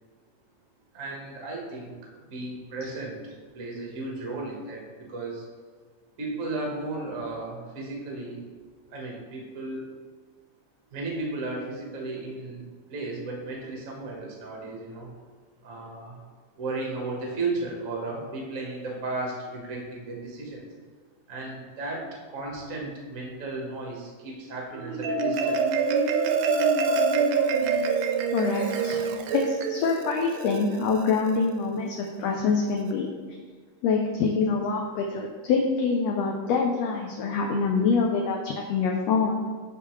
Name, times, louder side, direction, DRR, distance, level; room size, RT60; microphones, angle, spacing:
voice 1, 0.9-3.2 3.5-5.4 6.2-8.4 8.9-9.8 10.9-12.6 12.9-15.1 15.6-16.2 16.6-20.6 21.3-25.6, right 2 dB, 60° right, -1 dB, 0.8 m, -34 dB
Marimba xylophone, 24.7-31.4, right 4 dB, 80° right, 1.7 m, -26 dB
voice 2, 28.3-29.0 29.3-33.1 33.8-39.3, left 4 dB, 80° left, 1 dB, 1.5 m, -25 dB
11.5 x 4.0 x 3.1 m, 1.5 s
omnidirectional pair, 3.5 m